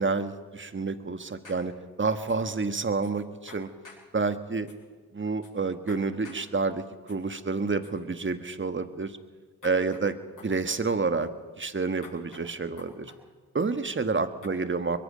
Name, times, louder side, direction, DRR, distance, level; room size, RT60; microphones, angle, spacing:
voice 1, 0.0-1.7 2.0-3.7 4.1-4.7 5.1-6.8 7.1-9.2 9.6-10.1 10.4-11.3 11.6-13.1 13.5-15.0, right 4 dB, 30° right, 10 dB, 1.6 m, -29 dB
sound 1, 1.4-1.6 2.3-2.4 3.0-3.1 3.5-4.0 4.7-4.8 5.4-5.5 5.9-6.4 7.1-7.2 7.8-7.9 9.6-10.1 10.4-10.8 12.0-12.5 12.8-13.2 14.4-14.5, left 4 dB, 55° left, 7.8 m, -49 dB
23.5 x 22.0 x 5.2 m, 1.4 s
supercardioid pair, 45°, 38 cm